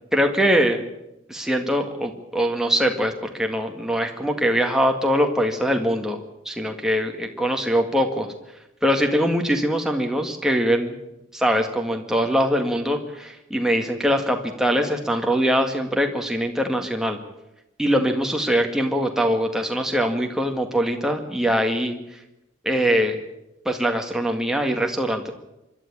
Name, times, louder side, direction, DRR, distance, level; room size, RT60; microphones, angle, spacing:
voice 1, 0.1-0.8 1.3-6.2 6.5-8.3 8.8-11.0 11.3-17.2 17.8-22.0 22.6-23.2 23.7-25.3, equal, 5° right, 3 dB, 1.9 m, -22 dB
25.5 x 12.5 x 8.8 m, 0.90 s
head